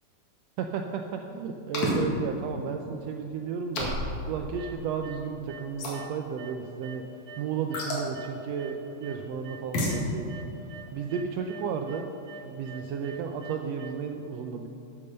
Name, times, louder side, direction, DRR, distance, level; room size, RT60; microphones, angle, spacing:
voice 1, 0.6-3.9 4.2-7.0 7.4-10.3 10.9-12.1 12.4-14.7, right 6 dB, 85° right, 4 dB, 1.4 m, -33 dB
sound 1, 1.7-2.0 3.8-4.2 5.8-6.0 7.7-8.1 9.7-10.0, left 2 dB, 65° left, 3.0 m, -29 dB
The terror of flatlining, 4.6-5.2 5.5-6.1 6.4-9.6 9.9-13.9, right 3 dB, 60° right, 2.5 m, -45 dB
8.8 x 8.4 x 6.6 m, 2.7 s
omnidirectional pair, 3.5 m